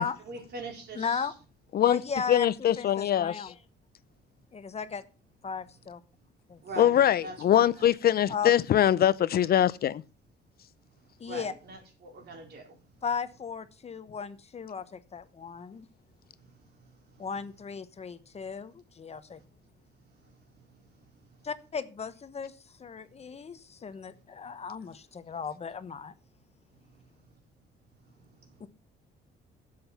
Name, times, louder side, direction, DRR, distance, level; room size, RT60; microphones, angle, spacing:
voice 1, 0.0-1.3 6.6-7.9 11.3-12.8, right 3 dB, 60° right, 4.0 m, -42 dB
voice 2, 0.9-1.3 1.8-3.6 4.5-5.0 5.4-6.0 6.5-6.6 8.3-8.5 11.2-11.5 13.0-15.9 17.2-19.4 21.5-26.1 28.6-28.7, left 6 dB, 35° left, 1.0 m, -36 dB
voice 3, 2.3-3.3 6.8-10.0, left 10 dB, 55° left, 0.6 m, -23 dB
11.0 x 7.7 x 5.9 m
cardioid pair, 120°, 19 cm